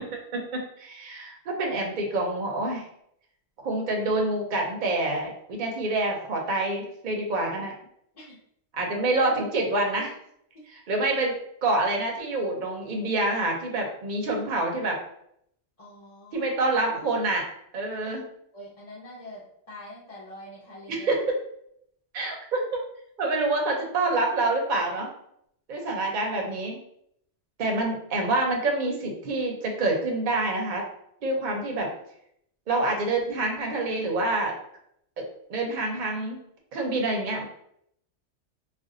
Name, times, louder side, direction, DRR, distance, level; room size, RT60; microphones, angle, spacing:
voice 1, 0.0-2.9 3.6-7.7 8.7-10.1 10.7-15.0 16.3-17.5 17.7-18.3 20.9-21.4 22.1-22.8 23.2-25.1 25.7-26.8 27.6-30.8 31.2-31.9 32.7-34.5 35.2-35.3 35.5-36.4 36.7-37.5, right 2 dB, 50° right, 1 dB, 0.7 m, -27 dB
voice 2, 15.8-16.5 18.5-21.1, left 1 dB, 35° left, -8 dB, 0.8 m, -44 dB
2.5 x 2.3 x 3.7 m, 0.72 s
omnidirectional pair, 1.2 m